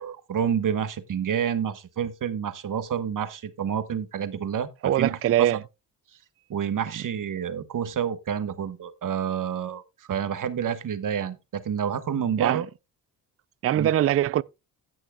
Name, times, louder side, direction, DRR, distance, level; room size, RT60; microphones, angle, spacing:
voice 1, 0.0-5.5 6.5-9.8 10.1-12.7 13.8-13.9, right 8 dB, 55° right, 1.3 m, -28 dB
voice 2, 4.8-5.6 12.4-12.6 13.6-14.4, right 12 dB, 40° right, 0.4 m, -22 dB
17.0 x 6.2 x 2.3 m
cardioid pair, 75°, 38 cm